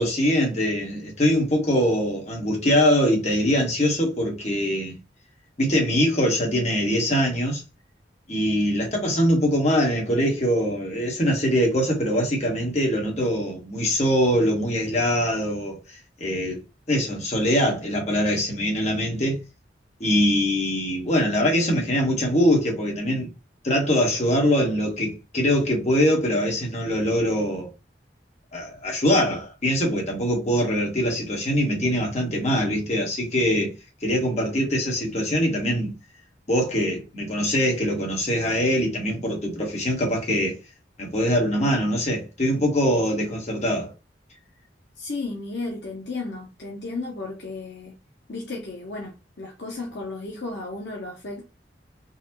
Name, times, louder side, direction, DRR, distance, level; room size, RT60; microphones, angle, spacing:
voice 1, 0.0-5.0 5.6-7.6 8.3-16.6 16.9-19.4 20.0-23.3 23.6-27.7 28.5-33.7 34.0-35.9 36.5-40.6 41.0-43.9, equal, 40° left, 1.4 m, -23 dB
voice 2, 45.0-48.0 48.3-51.4, left 3 dB, 70° left, 0.8 m, -34 dB
4.0 x 2.4 x 3.0 m
head